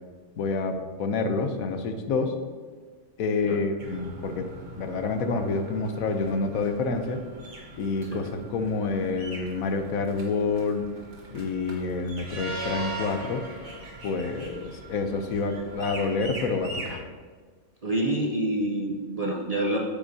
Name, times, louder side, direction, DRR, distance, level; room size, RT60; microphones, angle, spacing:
voice 1, 0.4-2.4 3.2-4.5 4.7-7.2 7.8-10.9 11.3-13.4 14.0-17.1, left 4 dB, 80° left, 7 dB, 1.2 m, -28 dB
sound 1, 3.8-17.0, right 2 dB, 80° right, 2.2 m, -40 dB
voice 2, 17.8-19.8, right 1 dB, 40° right, -1 dB, 0.6 m, -27 dB
10.0 x 6.9 x 2.7 m, 1.5 s
omnidirectional pair, 1.5 m